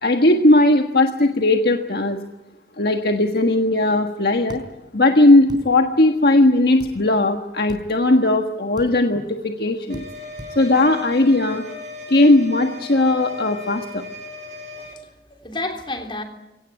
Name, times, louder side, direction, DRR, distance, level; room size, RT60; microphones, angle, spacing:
voice 1, 0.0-2.2 2.8-4.6 4.9-10.0 10.5-11.6 12.1-14.0, left 2 dB, 65° left, 1.5 m, -17 dB
sound 1, 4.5-4.6 5.5-5.6 6.8-6.9 7.7-7.9 8.8-8.9 9.9-10.1 10.4-10.5, equal, 25° right, 4.4 m, -37 dB
sound 2, 9.9-14.9, left 2 dB, 40° right, 6.3 m, -37 dB
voice 2, 14.8-16.2, left 2 dB, 30° left, 3.3 m, -31 dB
23.0 x 18.0 x 9.6 m
head